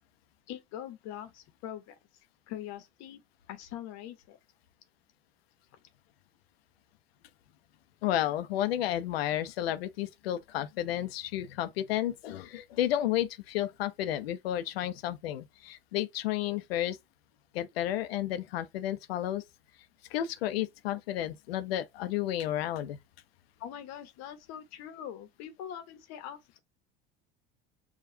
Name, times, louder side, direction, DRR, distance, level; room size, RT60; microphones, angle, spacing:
voice 1, 0.5-2.0 2.5-3.2 3.5-4.4 23.6-26.6, left 10 dB, 65° left, 0.9 m, -43 dB
voice 2, 8.0-17.0 17.5-19.4 20.1-23.0, left 12 dB, 90° left, 0.6 m, -32 dB
4.8 x 2.4 x 2.6 m
hypercardioid pair, 85°, 29 cm